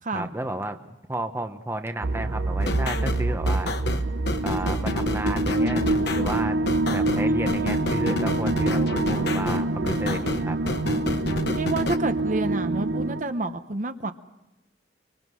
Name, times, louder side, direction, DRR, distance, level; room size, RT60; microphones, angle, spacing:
voice 1, 0.1-3.8 4.4-6.6 6.9-10.6, right 1 dB, 15° right, 7 dB, 0.9 m, -32 dB
sound 1, 2.0-13.2, right 2 dB, 75° right, 0.9 m, -26 dB
sound 2, 2.6-12.0, left 2 dB, 60° left, 1.2 m, -30 dB
voice 2, 11.5-14.1, right 2 dB, 45° right, 9 dB, 0.9 m, -29 dB
25.0 x 24.0 x 6.3 m, 0.94 s
head